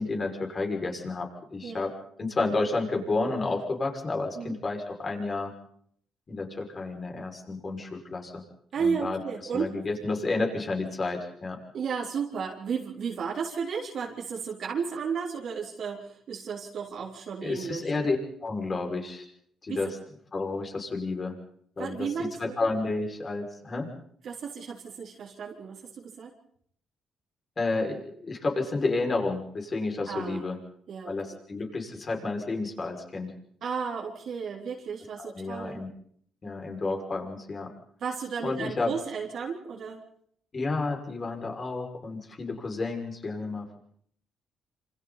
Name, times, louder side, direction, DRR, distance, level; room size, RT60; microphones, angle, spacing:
voice 1, 0.0-1.9 2.2-5.5 6.3-8.4 8.8-9.2 9.5-11.6 17.4-19.2 19.6-20.0 20.3-21.3 21.8-22.1 22.4-23.9 27.6-30.6 31.0-33.3 35.2-35.9 36.4-37.7 38.4-38.9 40.5-43.8, left 3 dB, 35° left, 2 dB, 6.2 m, -31 dB
voice 2, 8.7-9.7 11.7-17.9 19.7-19.8 21.8-22.6 24.2-26.3 30.1-30.5 30.9-31.4 33.6-35.8 38.0-40.0, right 6 dB, 65° right, -2 dB, 4.0 m, -33 dB
27.5 x 26.5 x 4.2 m, 0.63 s
cardioid pair, 90°, 0 cm